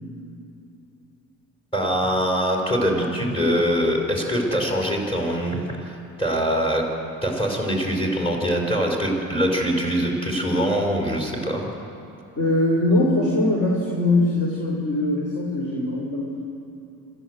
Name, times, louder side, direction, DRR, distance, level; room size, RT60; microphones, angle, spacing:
voice 1, 1.7-6.8 7.2-11.7, equal, 15° left, -1 dB, 4.8 m, -23 dB
voice 2, 12.4-16.4, left 1 dB, 45° left, -2 dB, 4.6 m, -22 dB
27.0 x 14.5 x 7.9 m, 2.9 s
cardioid pair, 120°, 35 cm